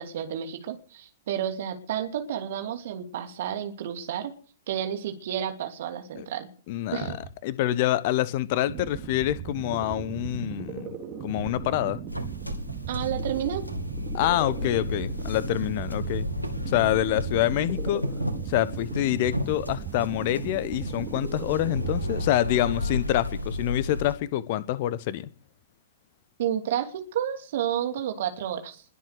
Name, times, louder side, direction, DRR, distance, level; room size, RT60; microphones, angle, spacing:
voice 1, 0.0-4.3 4.7-6.5 6.9-7.2 12.9-13.7 26.4-28.8, right 10 dB, 50° right, 6 dB, 2.8 m, -31 dB
voice 2, 6.7-7.2 7.4-11.0 11.2-12.0 14.1-16.3 16.7-18.0 18.5-25.3, left 13 dB, 45° left, 17 dB, 1.1 m, -26 dB
sound 1, 8.7-22.3, right 10 dB, 30° right, 2.8 m, -38 dB
sound 2, 12.1-24.1, left 1 dB, 90° left, 2.4 m, -33 dB
21.0 x 7.7 x 6.7 m, 0.42 s
figure-of-eight pair, 105°, 0 cm